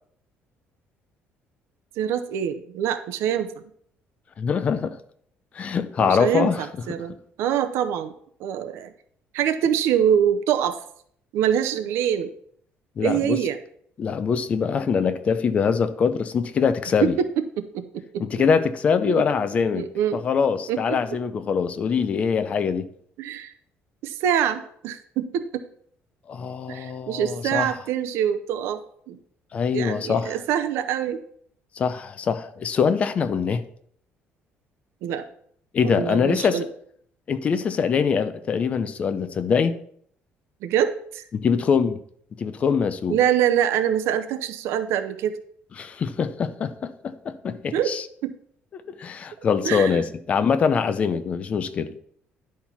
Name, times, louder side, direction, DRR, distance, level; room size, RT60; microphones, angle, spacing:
voice 1, 2.0-3.5 6.0-8.1 8.4-8.9 9.3-10.8 11.3-12.3 13.0-13.6 17.0-17.8 19.1-19.2 19.7-20.2 20.7-21.0 23.2-23.5 24.0-25.6 26.7-29.2 29.7-31.2 35.0-35.2 35.8-36.7 40.6-41.2 43.1-45.4 47.7-48.3 49.6-50.0, right 9 dB, 75° right, 9 dB, 0.7 m, -25 dB
voice 2, 4.4-5.0 5.5-6.6 13.0-13.4 14.0-17.2 18.2-19.9 20.1-22.9 26.3-27.7 29.5-30.4 31.7-33.6 35.7-36.6 37.3-39.8 41.3-42.0 42.4-43.2 45.8-48.0 48.7-51.9, left 6 dB, 30° left, 11 dB, 0.6 m, -23 dB
10.5 x 4.4 x 5.8 m, 0.64 s
cardioid pair, 170°, 4 cm